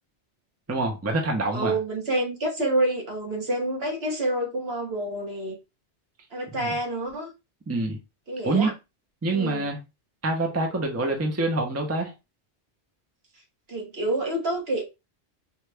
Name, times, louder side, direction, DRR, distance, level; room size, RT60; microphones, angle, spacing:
voice 1, 0.7-1.8 6.5-6.7 7.7-8.0 8.4-8.7 9.2-9.8 10.2-12.1, right 2 dB, 15° right, 0.6 m, -26 dB
voice 2, 1.5-5.6 6.3-7.3 8.3-8.7 9.3-9.7 13.7-14.9, right 1 dB, 60° right, 1.5 m, -28 dB
4.5 x 2.4 x 3.3 m
omnidirectional pair, 1.2 m